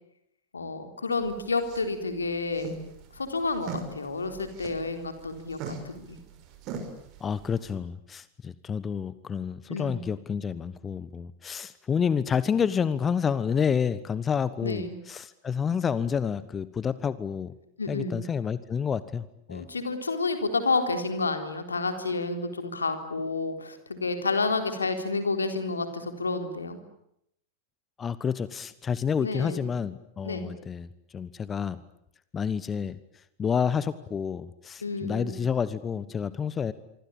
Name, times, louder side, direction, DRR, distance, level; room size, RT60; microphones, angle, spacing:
voice 1, 0.5-2.7 3.1-6.2 9.7-10.1 14.6-15.0 17.8-18.2 19.5-26.8 29.2-29.7 30.2-30.5 34.8-35.5, left 3 dB, 75° left, 8 dB, 3.8 m, -30 dB
sound 1, 1.1-7.7, right 4 dB, 40° right, 6.0 m, -42 dB
voice 2, 7.2-17.5 17.9-19.7 28.0-30.9 31.1-31.8 32.3-33.0 33.4-36.7, left 7 dB, 20° left, 17 dB, 1.1 m, -29 dB
25.5 x 25.5 x 8.8 m, 0.76 s
figure-of-eight pair, 90°, 0 cm